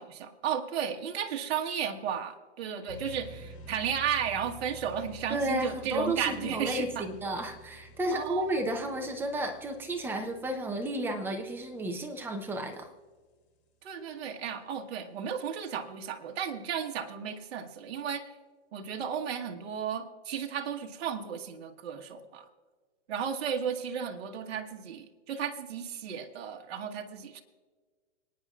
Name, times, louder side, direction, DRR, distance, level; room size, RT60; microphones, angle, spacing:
voice 1, 0.0-7.1 8.1-8.7 13.8-18.3 18.7-22.5 23.1-27.4, right 8 dB, 55° right, 3 dB, 1.4 m, -34 dB
sound 1, 2.9-12.4, right 1 dB, 60° left, 2.7 m, -50 dB
voice 2, 5.3-12.9, right 1 dB, 5° right, 4 dB, 0.6 m, -32 dB
26.5 x 9.7 x 2.4 m, 1.4 s
hypercardioid pair, 150°, 36 cm